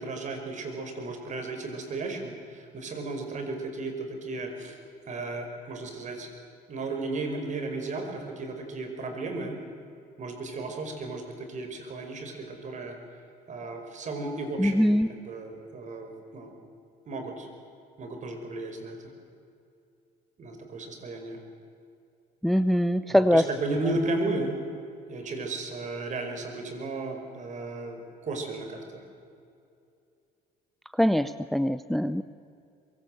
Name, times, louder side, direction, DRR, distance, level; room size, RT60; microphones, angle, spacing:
voice 1, 0.0-4.8 5.1-6.3 6.7-9.6 10.2-13.0 13.5-16.5 17.0-17.5 18.0-19.0 20.4-21.4 23.1-24.5 25.1-29.0, right 2 dB, 45° right, 5 dB, 5.2 m, -34 dB
voice 2, 14.6-15.1 22.4-23.4 31.0-32.2, equal, ahead, 13 dB, 0.6 m, -22 dB
24.0 x 22.5 x 7.9 m, 2.5 s
cardioid pair, 110°, 17 cm